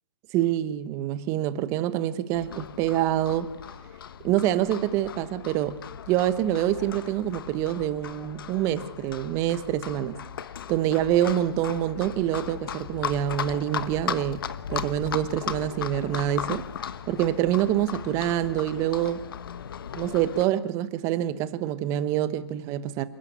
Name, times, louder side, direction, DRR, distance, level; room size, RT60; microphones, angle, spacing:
voice 1, 0.3-3.5 4.2-5.8 6.1-10.2 10.7-14.4 14.7-16.6 17.1-19.2 19.9-23.0, right 12 dB, 20° right, 1.0 m, -26 dB
Livestock farm animals working animals, 2.3-20.4, left 8 dB, 55° left, 1.1 m, -37 dB
28.0 x 12.0 x 8.2 m
hypercardioid pair, 155°, 14 cm